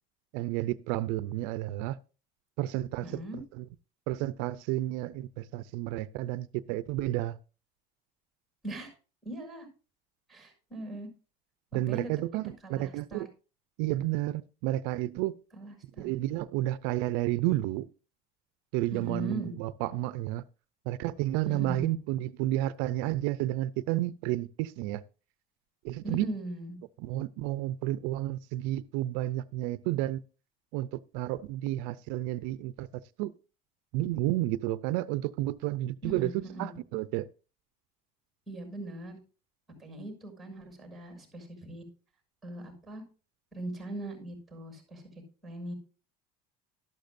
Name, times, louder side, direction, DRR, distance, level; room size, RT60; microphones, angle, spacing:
voice 1, 0.3-2.0 2.6-3.2 3.6-3.7 4.1-7.4 11.7-13.3 13.8-15.4 16.0-17.9 18.7-20.4 20.9-25.0 25.8-26.2 27.0-30.2 30.7-32.9 33.2-33.3 33.9-37.3, right 15 dB, 80° right, 0.5 m, -31 dB
voice 2, 3.0-3.4 8.6-8.9 9.2-9.7 10.3-11.1 11.7-12.1 12.6-13.2 15.5-16.1 18.9-19.5 21.4-21.9 26.0-26.8 36.0-36.7 38.5-39.2 39.8-41.8 42.4-43.0 43.5-45.0 45.4-45.7, right 1 dB, ahead, 6.3 m, -40 dB
12.5 x 12.0 x 2.6 m
cardioid pair, 145°, 20 cm